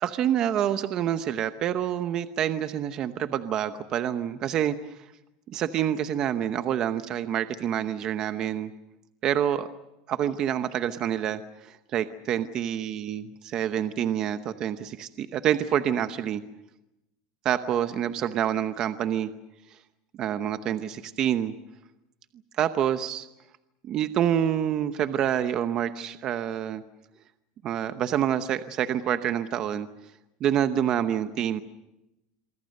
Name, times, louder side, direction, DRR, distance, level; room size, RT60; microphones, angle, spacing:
voice 1, 0.0-5.1 5.5-8.7 9.2-9.7 10.1-13.3 13.5-16.4 17.4-19.3 19.7-19.8 20.2-21.5 22.6-23.3 23.8-26.8 27.6-29.9 30.4-31.6, right 10 dB, 30° right, 10 dB, 0.9 m, -27 dB
27.0 x 23.5 x 6.6 m, 0.92 s
supercardioid pair, 165°, 2 cm